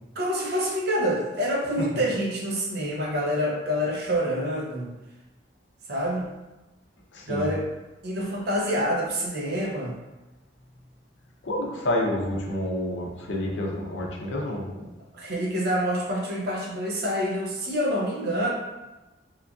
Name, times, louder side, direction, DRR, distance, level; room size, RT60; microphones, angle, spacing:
voice 1, 0.2-4.9 5.9-6.3 7.3-7.6 8.0-9.9 15.1-18.5, equal, 60° right, -2 dB, 0.6 m, -27 dB
voice 2, 7.1-7.5 11.4-14.9, left 1 dB, 75° left, -1 dB, 0.6 m, -29 dB
2.9 x 2.4 x 2.3 m, 1.1 s
head